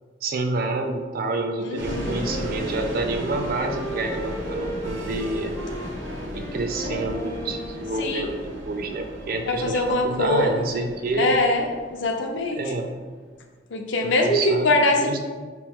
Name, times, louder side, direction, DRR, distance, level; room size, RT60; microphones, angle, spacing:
voice 1, 0.2-5.5 6.3-11.3 12.5-13.0 14.0-15.2, right 3 dB, 50° right, 5 dB, 0.4 m, -28 dB
voice 2, 1.6-2.3 6.8-7.1 8.0-8.3 9.5-10.8 11.2-12.6 13.7-15.2, left 2 dB, 70° left, 3 dB, 0.5 m, -23 dB
sound 1, 1.7-13.2, equal, 85° right, 0.7 m, -36 dB
Wind instrument woodwind instrument, 1.8-8.5, equal, 15° left, 0.4 m, -37 dB
3.0 x 3.0 x 3.5 m, 1.5 s
head